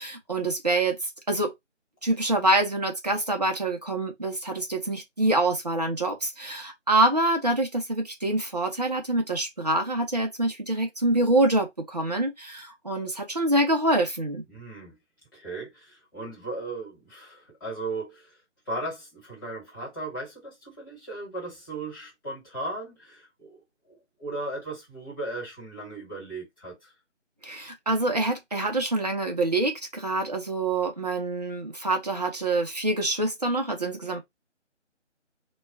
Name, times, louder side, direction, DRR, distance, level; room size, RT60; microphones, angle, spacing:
voice 1, 0.0-1.5 2.0-14.4 27.4-34.2, right 2 dB, 35° right, 0.6 m, -26 dB
voice 2, 14.5-14.9 15.3-18.3 18.7-23.6 23.9-26.7, right 2 dB, 15° left, 1.2 m, -36 dB
2.3 x 2.3 x 3.3 m
figure-of-eight pair, 155°, 37 cm